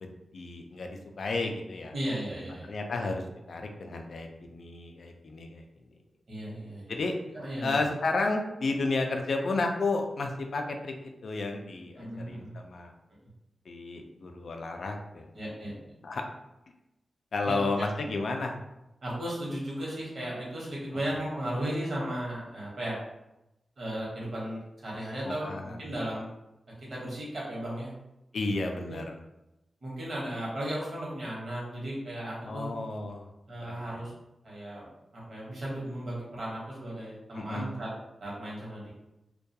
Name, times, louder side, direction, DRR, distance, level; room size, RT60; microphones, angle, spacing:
voice 1, 0.0-1.9 2.7-5.7 6.9-7.1 7.6-12.9 13.7-15.3 16.0-16.2 17.3-18.6 20.9-21.0 25.2-25.8 28.3-29.1 32.5-33.3 33.7-34.0 37.3-37.7, left 3 dB, 70° left, 3 dB, 0.3 m, -32 dB
voice 2, 1.9-2.7 6.3-6.9 7.3-7.9 12.0-12.6 15.3-15.7 17.4-17.6 19.0-23.0 23.8-26.3 26.8-27.9 28.9-29.0 29.8-32.7 33.5-34.1 34.4-37.9 38.2-38.9, right 1 dB, 60° right, -5 dB, 1.0 m, -35 dB
2.2 x 2.2 x 2.7 m, 0.90 s
wide cardioid pair, 125°, 0 cm